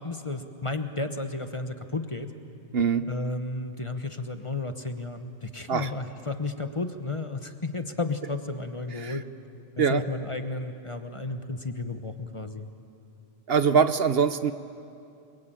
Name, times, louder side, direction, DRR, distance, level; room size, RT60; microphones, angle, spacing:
voice 1, 0.0-2.3 3.1-9.3 9.8-12.7, left 3 dB, 25° left, 7 dB, 1.1 m, -33 dB
voice 2, 2.7-3.0 5.7-5.9 9.0-9.2 9.8-10.0 13.5-14.5, right 6 dB, 60° right, 11 dB, 1.0 m, -23 dB
29.0 x 22.5 x 9.0 m, 2.6 s
omnidirectional pair, 1.2 m